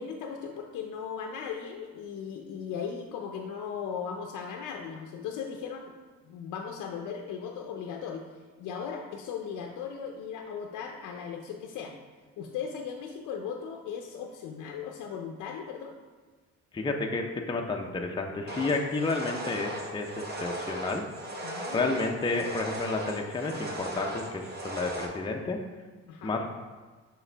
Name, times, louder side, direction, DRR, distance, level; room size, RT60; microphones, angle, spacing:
voice 1, 0.0-5.9 6.2-8.2 8.6-11.9 12.4-15.9 21.4-22.0 26.1-26.4, left 7 dB, 90° left, 1 dB, 0.6 m, -37 dB
voice 2, 16.7-21.0 21.7-25.6 26.2-26.5, left 3 dB, 15° left, 2 dB, 0.5 m, -31 dB
sound 1, 18.5-25.1, right 1 dB, 35° right, 1.0 m, -37 dB
6.1 x 4.7 x 3.3 m, 1.4 s
cardioid pair, 90°, 30 cm